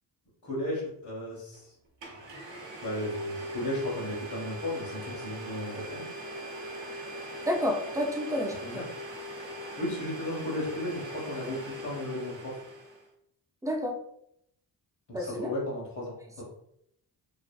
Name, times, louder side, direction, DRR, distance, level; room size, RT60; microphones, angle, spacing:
voice 1, 0.4-1.7 2.8-6.1 8.6-8.8 9.8-12.5 15.1-16.4, left 1 dB, 45° left, -6 dB, 0.9 m, -35 dB
Domestic sounds home sounds, 1.5-1.6 2.0-13.1, equal, 90° right, 0.8 m, -40 dB
voice 2, 7.4-8.8 13.6-14.0 15.1-15.5, left 1 dB, 10° right, 2 dB, 0.4 m, -30 dB
2.6 x 2.4 x 2.2 m, 0.74 s
cardioid pair, 70°, 42 cm